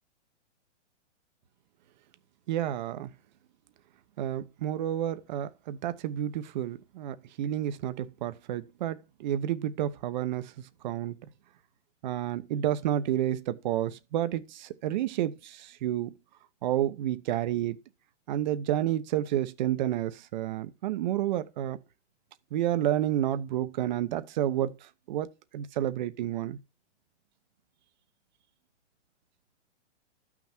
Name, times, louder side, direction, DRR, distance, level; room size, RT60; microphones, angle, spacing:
voice 1, 2.5-3.1 4.2-10.5 10.8-11.2 12.0-16.1 16.6-17.8 18.3-21.8 22.5-24.7 25.1-25.3 25.5-26.6, right 12 dB, 40° right, 1.0 m, -30 dB
13.5 x 6.1 x 4.4 m
hypercardioid pair, 155°, 36 cm